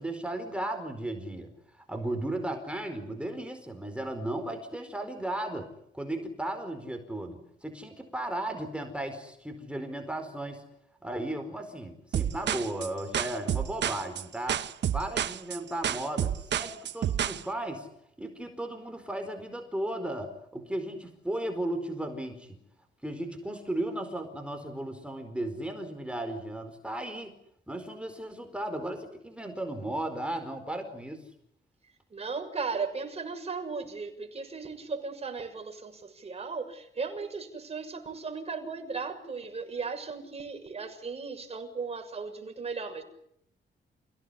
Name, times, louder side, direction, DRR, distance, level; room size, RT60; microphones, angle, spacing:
voice 1, 0.0-5.7 5.9-10.6 11.0-14.6 14.9-17.9 18.2-22.6 23.0-27.3 27.7-31.2, right 1 dB, 5° right, 5 dB, 4.6 m, -35 dB
sound 1, 12.1-17.4, right 10 dB, 75° right, 1.2 m, -30 dB
voice 2, 32.1-43.0, right 4 dB, 35° right, 4 dB, 6.8 m, -36 dB
29.5 x 17.5 x 10.0 m, 0.73 s
cardioid pair, 115°, 19 cm